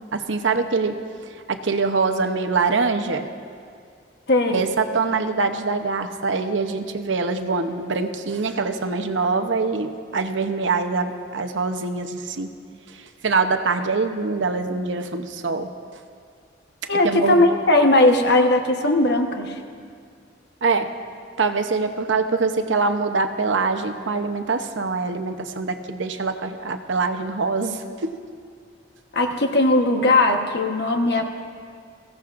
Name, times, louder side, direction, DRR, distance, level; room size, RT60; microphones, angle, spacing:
voice 1, 0.1-0.9 1.5-3.3 4.5-12.5 13.2-15.7 17.0-17.4 20.6-20.9 21.4-28.1, right 4 dB, 70° right, 7 dB, 0.8 m, -24 dB
voice 2, 4.3-4.6 16.9-19.5 29.1-31.2, left 2 dB, 55° left, 4 dB, 1.2 m, -18 dB
22.0 x 16.0 x 2.6 m, 2.1 s
head